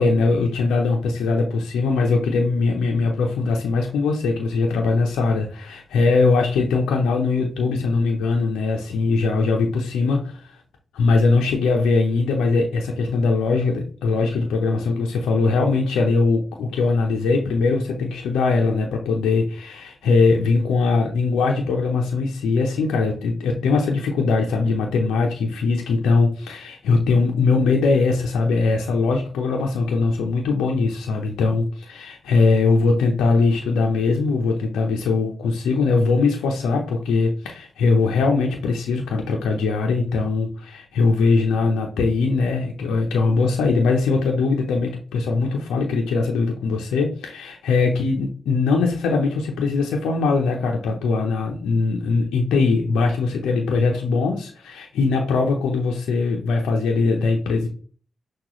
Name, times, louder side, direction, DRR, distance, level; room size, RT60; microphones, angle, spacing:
voice 1, 0.0-10.2 11.0-57.7, left 4 dB, 80° left, 1 dB, 0.7 m, -21 dB
6.0 x 2.5 x 3.1 m, 0.42 s
hypercardioid pair, 40°, 0 cm